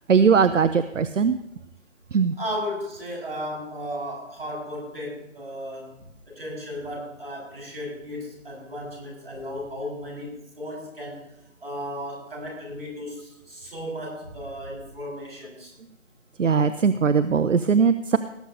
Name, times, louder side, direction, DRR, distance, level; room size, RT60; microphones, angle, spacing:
voice 1, 0.1-1.4 2.1-2.3 16.4-18.2, right 6 dB, 75° right, 13 dB, 0.7 m, -20 dB
voice 2, 2.3-11.3 11.6-15.7, equal, 50° right, -2 dB, 5.4 m, -35 dB
19.0 x 9.9 x 2.7 m, 0.84 s
figure-of-eight pair, 175°, 38 cm